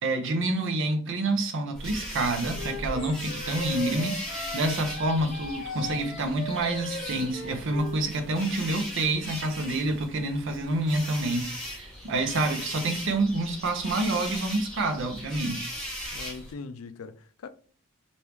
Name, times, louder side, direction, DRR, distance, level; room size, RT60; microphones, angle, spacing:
voice 1, 0.0-15.7, right 2 dB, 65° right, 0.7 m, -28 dB
sound 1, 1.7-16.5, equal, 5° left, 1.1 m, -38 dB
Wind instrument woodwind instrument, 2.5-8.0, left 3 dB, 45° left, 0.6 m, -38 dB
voice 2, 16.1-17.5, left 4 dB, 85° left, 0.4 m, -41 dB
3.0 x 2.6 x 3.4 m
head